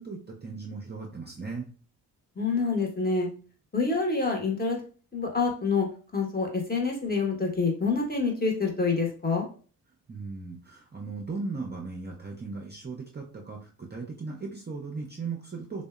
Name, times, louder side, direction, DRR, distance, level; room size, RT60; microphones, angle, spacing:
voice 1, 0.0-1.7 10.1-15.8, right 4 dB, 25° right, 0 dB, 0.5 m, -37 dB
voice 2, 2.4-3.3 3.7-4.8 5.1-5.9 6.1-9.5, left 4 dB, 20° left, 1 dB, 0.8 m, -27 dB
2.7 x 2.1 x 2.3 m, 0.39 s
supercardioid pair, 45°, 44 cm